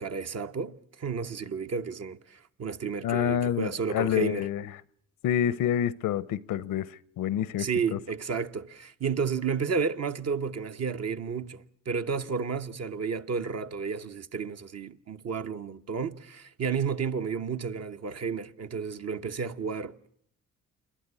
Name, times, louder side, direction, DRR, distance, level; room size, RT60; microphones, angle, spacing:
voice 1, 0.0-4.5 7.6-19.9, right 5 dB, 50° right, 1.0 m, -32 dB
voice 2, 3.0-4.7 5.2-6.9 7.2-8.0, left 10 dB, 85° left, 0.8 m, -28 dB
27.5 x 11.5 x 9.7 m
cardioid pair, 75°, 32 cm